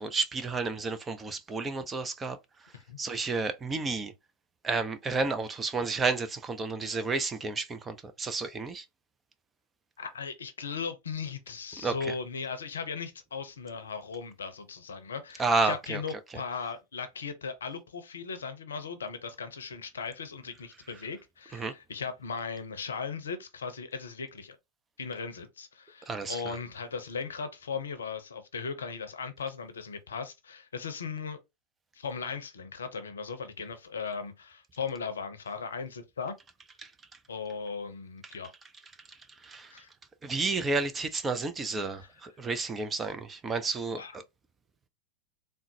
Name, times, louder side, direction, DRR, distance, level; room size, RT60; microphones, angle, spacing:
voice 1, 0.0-2.4 3.0-4.1 4.6-8.8 11.8-12.1 15.4-16.0 21.5-21.7 26.0-26.6 36.8-36.9 39.1-39.7 40.2-44.0, right 3 dB, 15° right, 0.4 m, -31 dB
voice 2, 10.0-24.6 25.0-31.4 31.9-36.3 37.3-38.5 39.7-39.9 42.0-42.1 43.9-44.1, left 5 dB, 70° left, 0.6 m, -37 dB
3.7 x 2.1 x 2.7 m
figure-of-eight pair, 90°, 0 cm